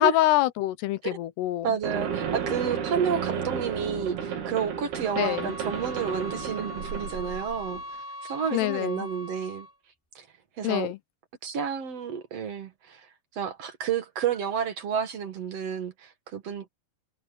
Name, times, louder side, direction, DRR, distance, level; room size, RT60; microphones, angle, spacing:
voice 1, 0.0-1.7 5.2-5.5 8.5-9.1 10.6-11.0, left 16 dB, 90° left, 3.1 m, -25 dB
voice 2, 1.6-7.8 8.2-9.7 10.2-10.3 10.6-10.9 11.4-13.0 13.3-16.7, right 7 dB, 50° right, 2.2 m, -30 dB
sound 1, 1.8-7.8, right 7 dB, 75° right, 5.2 m, -33 dB
sound 2, 5.0-9.8, left 1 dB, 5° left, 7.2 m, -41 dB
omnidirectional pair, 4.6 m